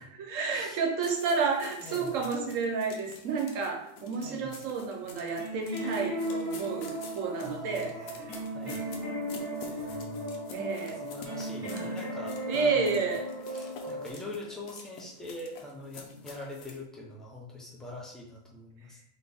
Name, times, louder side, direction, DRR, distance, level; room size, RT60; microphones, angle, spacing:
voice 1, 0.2-8.3 9.5-9.7 10.5-11.1 11.6-12.0 12.5-13.3, right 5 dB, 70° right, 2 dB, 1.0 m, -31 dB
sound 1, 1.0-16.8, left 4 dB, 80° left, 1.1 m, -49 dB
voice 2, 1.8-2.3 4.2-4.6 7.4-8.3 8.5-8.9 11.0-13.0 13.5-19.0, left 2 dB, ahead, -3 dB, 0.3 m, -43 dB
sound 2, 3.8-4.3 5.0-5.5 8.2-9.4 9.8-10.4 11.4-11.9 14.2-14.7 15.8-16.3, left 1 dB, 50° left, 1.0 m, -52 dB
sound 3, 5.4-14.1, equal, 15° right, 1.1 m, -36 dB
4.1 x 2.9 x 3.5 m, 0.71 s
omnidirectional pair, 1.4 m